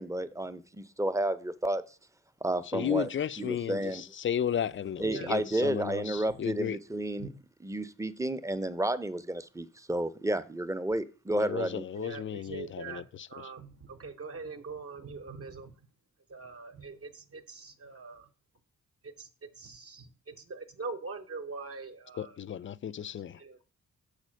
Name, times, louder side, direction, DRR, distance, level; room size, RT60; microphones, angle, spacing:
voice 1, 0.0-1.8 2.4-3.1 3.4-4.0 5.0-7.3 7.6-11.8, right 1 dB, 10° right, 0.6 m, -31 dB
voice 2, 2.7-6.8 11.3-13.3 22.2-23.4, left 9 dB, 40° left, 0.4 m, -34 dB
voice 3, 12.0-15.7 16.3-18.3 19.0-19.3 19.6-22.4 23.4-23.6, right 4 dB, 45° right, 0.8 m, -43 dB
6.5 x 4.1 x 6.3 m
cardioid pair, 75°, 32 cm